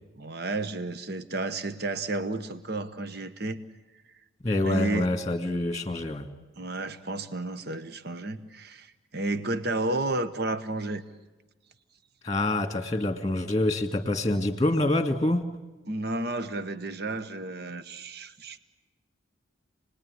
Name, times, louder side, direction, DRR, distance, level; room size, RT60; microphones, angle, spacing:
voice 1, 0.2-3.6 4.6-5.1 6.6-11.0 14.2-14.4 15.9-18.6, right 2 dB, 50° right, 11 dB, 1.1 m, -32 dB
voice 2, 4.4-6.3 12.2-15.4, left 1 dB, 20° left, 7 dB, 1.9 m, -26 dB
29.0 x 20.5 x 9.7 m, 1.2 s
head